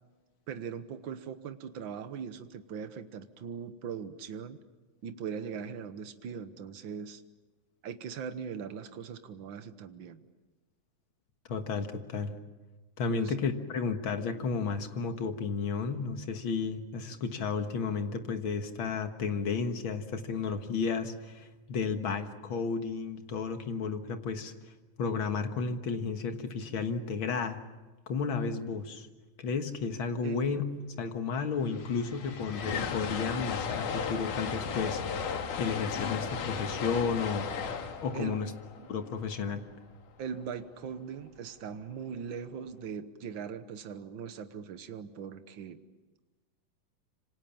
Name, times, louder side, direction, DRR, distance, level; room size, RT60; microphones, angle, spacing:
voice 1, 0.5-4.6 5.0-7.2 7.8-10.3 13.1-13.3 30.2-30.5 38.1-38.9 40.2-45.8, right 7 dB, 65° right, 10 dB, 1.2 m, -40 dB
voice 2, 11.5-12.3 13.0-24.5 25.0-27.6 28.1-29.1 29.4-30.6 31.0-35.3 35.6-37.5 38.0-38.5 38.9-39.6, left 5 dB, 50° left, 7 dB, 1.9 m, -32 dB
sound 1, 31.2-31.3 31.4-39.7, left 6 dB, 80° left, 3.3 m, -35 dB
27.5 x 26.0 x 7.2 m, 1.2 s
omnidirectional pair, 3.6 m